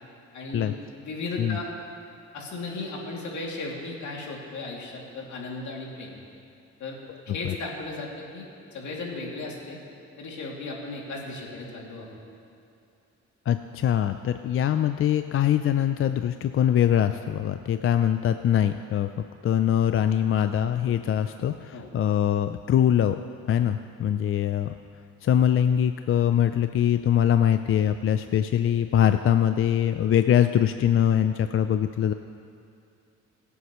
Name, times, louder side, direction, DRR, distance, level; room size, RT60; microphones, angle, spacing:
voice 1, 0.3-1.7 2.3-6.2 6.8-7.0 7.3-8.5 8.7-9.8 10.2-12.2 21.7-21.9, left 3 dB, 70° left, -2 dB, 2.6 m, -36 dB
voice 2, 13.5-23.2 23.5-24.7 25.2-32.1, left 10 dB, 45° left, 9 dB, 0.4 m, -23 dB
23.0 x 8.1 x 3.1 m, 2.6 s
cardioid pair, 90°, 30 cm